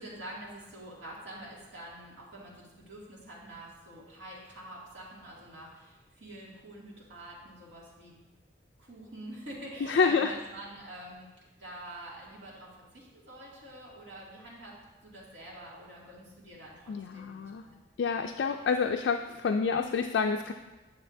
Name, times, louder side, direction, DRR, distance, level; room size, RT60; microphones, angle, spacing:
voice 1, 0.0-8.1 8.8-17.8, right 1 dB, 80° right, -5 dB, 2.3 m, -46 dB
voice 2, 9.9-10.3 16.9-17.6 18.0-20.5, left 5 dB, 70° left, 4 dB, 0.3 m, -28 dB
8.7 x 7.0 x 2.6 m, 1.2 s
head